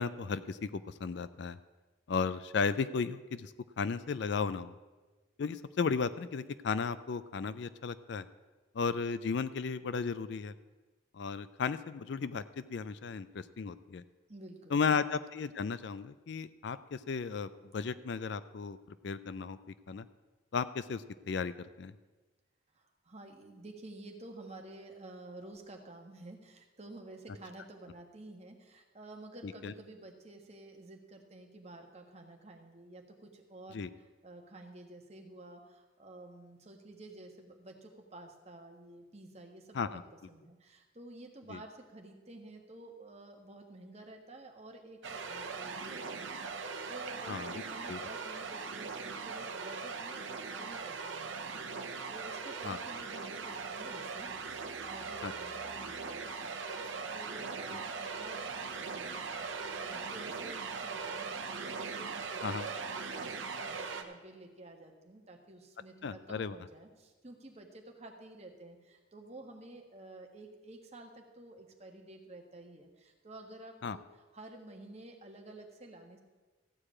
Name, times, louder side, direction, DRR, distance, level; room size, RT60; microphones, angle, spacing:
voice 1, 0.0-1.6 2.1-4.7 5.4-8.3 8.7-10.5 11.1-14.0 14.7-18.8 19.0-19.6 19.9-20.1 20.5-21.9 29.4-29.7 33.7-33.9 39.7-40.0 41.5-41.6 47.3-48.0 52.6-52.8 55.2-55.3 62.4-62.7 66.0-66.6 73.8-74.0, left 5 dB, 60° left, 15 dB, 0.4 m, -35 dB
voice 2, 14.3-15.0 22.7-40.0 40.3-76.2, right 2 dB, 30° right, 3 dB, 1.4 m, -51 dB
sound 1, 45.0-64.0, right 4 dB, 65° right, 1.0 m, -40 dB
14.5 x 4.9 x 8.6 m, 1.3 s
head